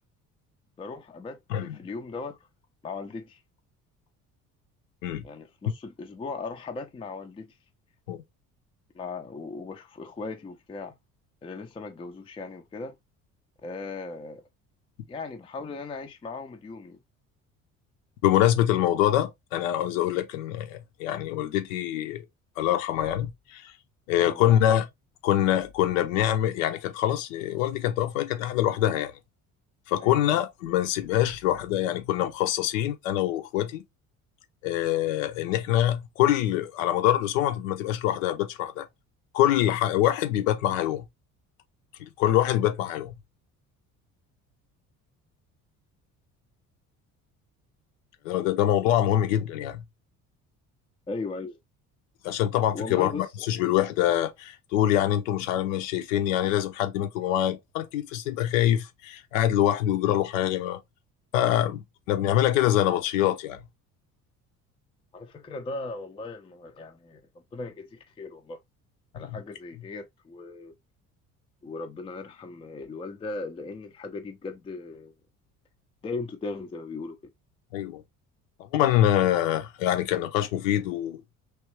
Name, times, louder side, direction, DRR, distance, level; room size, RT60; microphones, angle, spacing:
voice 1, 0.8-2.4 2.8-3.4 5.2-7.6 8.9-10.9 11.4-12.9 13.6-14.4 15.1-17.0 24.3-24.6 30.0-30.2 51.1-51.6 52.7-53.2 65.1-67.2 67.5-68.6 69.1-70.7 71.6-75.1 76.0-77.2, left 3 dB, 10° left, 0.5 m, -37 dB
voice 2, 18.2-22.2 22.6-23.7 24.1-24.9 25.2-29.1 29.9-33.8 34.6-38.9 39.3-41.0 42.0-43.2 48.2-49.8 52.2-60.8 61.3-63.6 69.2-69.4 77.7-78.0 78.7-81.2, left 12 dB, 60° left, 0.7 m, -25 dB
3.2 x 3.0 x 3.1 m
figure-of-eight pair, 55°, 44 cm